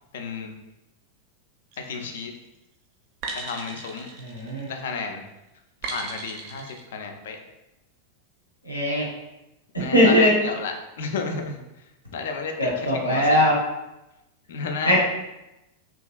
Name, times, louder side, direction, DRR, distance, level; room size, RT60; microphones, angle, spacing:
voice 1, 0.1-0.5 1.8-2.3 3.3-4.1 4.7-5.2 5.8-7.4 9.8-11.8 12.1-13.4 14.5-15.0, left 4 dB, 60° left, 4 dB, 0.3 m, -32 dB
sound 1, 1.7-2.1 3.2-4.9 5.8-6.8, right 3 dB, 45° right, 0.4 m, -36 dB
voice 2, 4.2-4.7 8.6-9.1 9.7-10.3 12.6-13.6 14.8-15.0, left 1 dB, 80° left, -4 dB, 0.7 m, -20 dB
2.8 x 2.4 x 2.3 m, 0.95 s
figure-of-eight pair, 90°, 0 cm